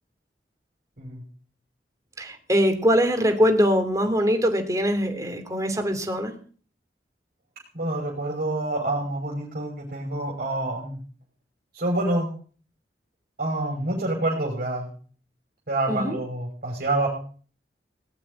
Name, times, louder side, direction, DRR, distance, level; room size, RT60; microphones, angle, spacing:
voice 1, 2.2-6.3 15.9-16.2, equal, 20° right, 6 dB, 3.1 m, -22 dB
voice 2, 7.7-11.0 11.7-12.3 13.4-14.9 15.7-17.1, right 2 dB, 55° right, -2 dB, 5.6 m, -27 dB
18.5 x 7.6 x 9.7 m, 0.43 s
head